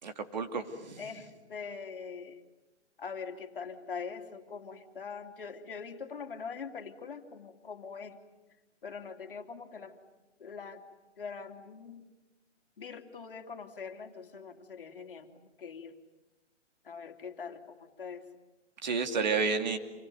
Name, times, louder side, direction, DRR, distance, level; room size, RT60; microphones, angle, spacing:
voice 1, 0.0-1.0 18.8-19.8, right 5 dB, 35° right, 7 dB, 2.6 m, -31 dB
voice 2, 1.0-2.4 3.0-8.2 8.8-10.0 10.4-10.9 11.2-12.1 12.8-15.3 15.6-15.9 16.8-18.3, left 5 dB, 45° left, 5 dB, 2.8 m, -43 dB
28.0 x 22.5 x 9.3 m, 1.1 s
hypercardioid pair, 180°, 36 cm